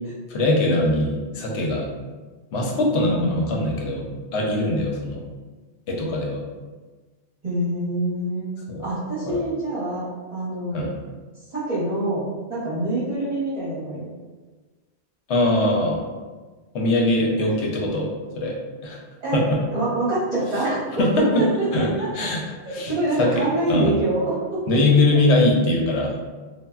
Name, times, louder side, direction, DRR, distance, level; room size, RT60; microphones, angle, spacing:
voice 1, 0.3-1.9 2.5-5.2 5.9-6.4 8.7-8.8 9.3-9.4 10.7-10.9 15.3-16.0 16.7-18.6 18.8-19.0 19.3-19.6 21.0-21.4 21.7-21.9 22.1-22.4 22.7-22.9 23.2-24.0 24.7-26.2, left 2 dB, 80° left, -1 dB, 0.9 m, -22 dB
voice 2, 7.4-8.5 8.8-10.8 11.5-14.1 19.2-19.4 19.7-21.0 21.4-22.1 22.8-24.8, right 1 dB, 40° right, -10 dB, 0.8 m, -25 dB
3.4 x 2.2 x 2.2 m, 1.3 s
omnidirectional pair, 1.2 m